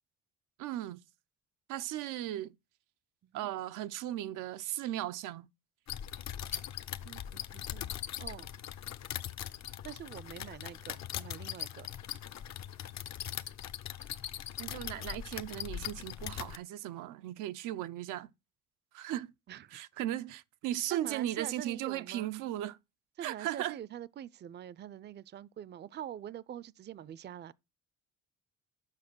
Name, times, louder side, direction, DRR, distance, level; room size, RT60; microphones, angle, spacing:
voice 1, 0.6-1.0 1.7-2.5 3.3-5.5 14.6-18.3 18.9-19.3 19.7-22.8 23.2-23.8, right 13 dB, 90° right, 0.5 m, -37 dB
sound 1, 5.9-16.6, left 10 dB, 65° left, 0.7 m, -41 dB
voice 2, 7.0-7.9 8.2-8.5 9.8-11.9 19.5-19.8 20.9-22.3 23.2-27.5, right 10 dB, 35° right, 0.4 m, -45 dB
7.4 x 5.8 x 6.1 m
cardioid pair, 90°, 30 cm